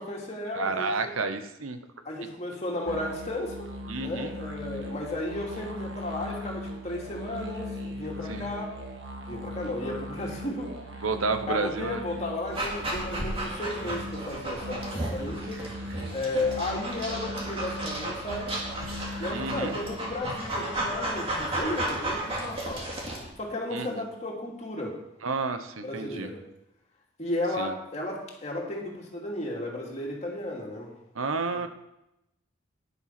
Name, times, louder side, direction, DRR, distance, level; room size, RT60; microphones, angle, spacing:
voice 1, 0.0-1.1 2.0-3.7 4.0-8.7 9.3-11.0 11.4-15.6 16.1-18.6 19.2-22.8 23.4-25.0 25.8-26.4 27.2-30.9 31.5-31.7, left 1 dB, 30° left, -2 dB, 2.6 m, -34 dB
voice 2, 0.5-1.8 3.9-4.3 8.3-8.5 11.0-12.0 19.3-19.7 23.7-24.0 25.2-26.3 27.6-27.7 31.1-31.7, right 4 dB, 85° right, 9 dB, 0.9 m, -30 dB
sound 1, 2.9-20.1, equal, 60° right, 1.6 m, -39 dB
Dog, 12.5-23.3, right 1 dB, 25° right, 2.1 m, -34 dB
10.5 x 8.1 x 5.9 m, 0.88 s
head